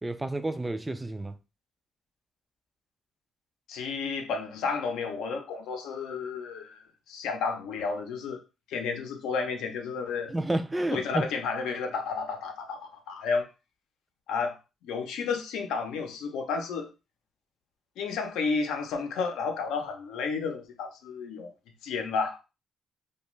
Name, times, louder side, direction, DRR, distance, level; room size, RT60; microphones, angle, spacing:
voice 1, 0.0-1.4 10.3-11.3, right 1 dB, 15° right, 0.3 m, -30 dB
voice 2, 3.7-8.4 8.7-10.3 10.9-13.5 14.3-14.6 14.8-16.9 18.0-21.5 21.8-22.4, left 5 dB, 90° left, 0.6 m, -32 dB
2.5 x 2.3 x 3.0 m
cardioid pair, 90°, 0 cm